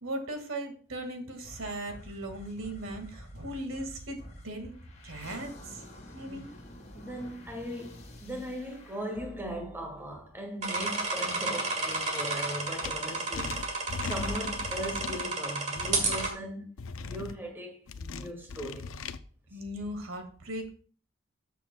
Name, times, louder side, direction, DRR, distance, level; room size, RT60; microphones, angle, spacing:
voice 1, 0.0-4.2 4.4-4.7 5.0-5.8 6.1-6.5 19.5-20.7, right 1 dB, 85° right, 1.9 m, -38 dB
sound 1, 1.4-10.8, left 1 dB, 35° left, 2.3 m, -49 dB
voice 2, 6.9-16.7 17.0-18.9, equal, 10° right, 1.7 m, -39 dB
sound 2, 10.6-16.3, right 3 dB, 35° right, 2.1 m, -31 dB
sound 3, 12.8-12.9 13.3-15.2 15.8-16.3 16.8-17.3 17.9-19.2, left 4 dB, 85° left, 0.6 m, -38 dB
13.5 x 6.9 x 2.2 m
head